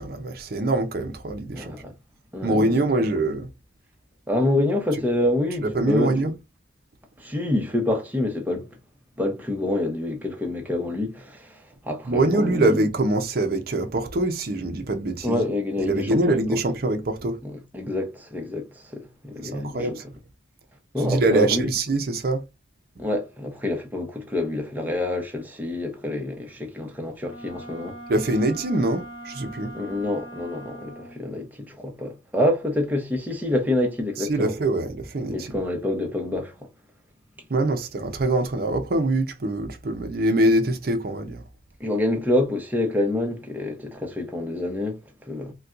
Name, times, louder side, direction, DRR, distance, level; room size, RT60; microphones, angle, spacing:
voice 1, 0.0-1.7 2.4-3.5 5.6-6.3 12.1-15.4 15.9-17.4 19.4-20.0 21.0-22.4 28.1-29.7 34.2-35.5 37.5-41.4, right 2 dB, 50° right, 0.6 m, -24 dB
voice 2, 1.5-1.9 2.3-2.7 4.3-6.1 7.2-8.7 9.2-12.8 15.2-16.4 17.4-20.0 20.9-21.6 23.0-28.0 29.7-34.5 35.3-36.5 41.8-45.5, left 1 dB, 10° right, 0.8 m, -27 dB
Wind instrument woodwind instrument, 27.2-31.3, right 1 dB, 25° left, 1.3 m, -41 dB
4.1 x 2.2 x 2.5 m
head